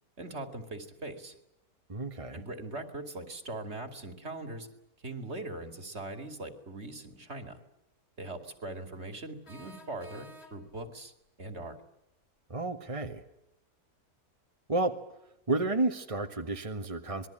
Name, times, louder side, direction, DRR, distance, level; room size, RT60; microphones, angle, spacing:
voice 1, 0.2-1.3 2.3-4.7 5.0-7.6 8.2-11.1 11.4-11.8, right 2 dB, 45° right, 7 dB, 2.9 m, -41 dB
voice 2, 1.9-2.4 12.5-13.2 14.7-14.9 15.5-17.3, right 2 dB, 20° right, 4 dB, 1.5 m, -31 dB
sound 1, 9.4-10.9, equal, 45° left, 3.5 m, -52 dB
27.0 x 21.0 x 9.0 m, 0.86 s
omnidirectional pair, 1.6 m